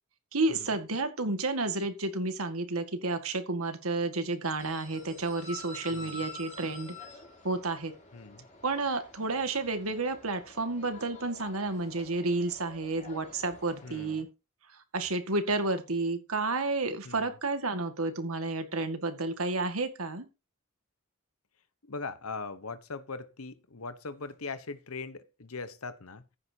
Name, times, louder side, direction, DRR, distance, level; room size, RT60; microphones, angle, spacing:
voice 1, 0.3-6.9 7.4-7.9 8.6-14.3 14.9-20.3, right 3 dB, 80° right, 2.0 m, -31 dB
sound 1, 4.6-14.2, left 3 dB, 35° left, 3.5 m, -48 dB
voice 2, 5.9-6.3 8.1-8.5 13.8-14.3 17.0-17.3 21.8-26.2, left 4 dB, 80° left, 1.1 m, -40 dB
14.5 x 9.8 x 2.9 m
head